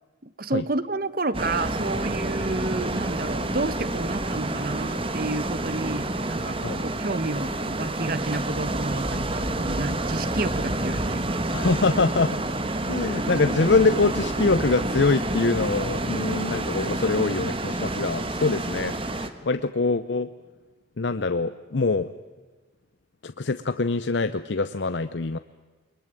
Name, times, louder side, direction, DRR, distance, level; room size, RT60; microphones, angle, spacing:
voice 1, 0.2-11.4, right 2 dB, 50° right, 15 dB, 1.1 m, -30 dB
sound 1, 1.3-19.3, right 1 dB, 30° right, 1.4 m, -28 dB
voice 2, 11.5-12.4 12.9-20.3 21.0-22.1 23.2-25.4, left 3 dB, 65° left, 11 dB, 0.7 m, -24 dB
23.0 x 21.0 x 9.1 m, 1.3 s
head